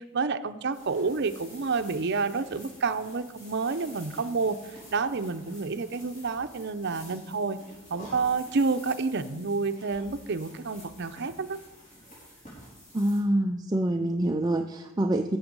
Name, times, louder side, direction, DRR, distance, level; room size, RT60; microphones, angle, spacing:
voice 1, 0.0-4.6 4.9-7.6 7.9-11.6, right 4 dB, 55° right, 9 dB, 0.6 m, -29 dB
sound 1, 0.7-13.2, equal, 35° left, 4.8 m, -49 dB
voice 2, 12.9-15.4, right 1 dB, 20° right, 5 dB, 0.4 m, -26 dB
14.0 x 7.9 x 5.3 m, 1.1 s
head